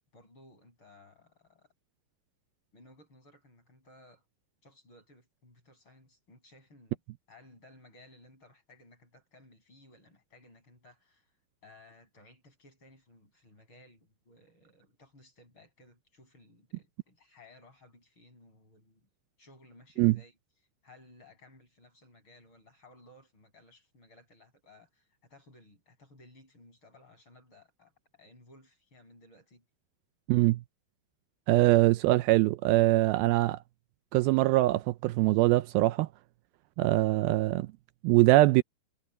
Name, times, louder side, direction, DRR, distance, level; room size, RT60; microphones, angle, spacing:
voice 1, 0.1-1.7 2.7-4.2 4.6-7.0 7.3-11.3 11.6-19.1 19.4-20.4 20.8-29.6 31.5-31.7, left 2 dB, 30° left, 7.9 m, -58 dB
voice 2, 30.3-30.6 31.5-33.6 34.1-36.1 36.8-37.7 38.0-38.6, right 18 dB, 80° right, 2.3 m, -23 dB
omnidirectional pair, 4.4 m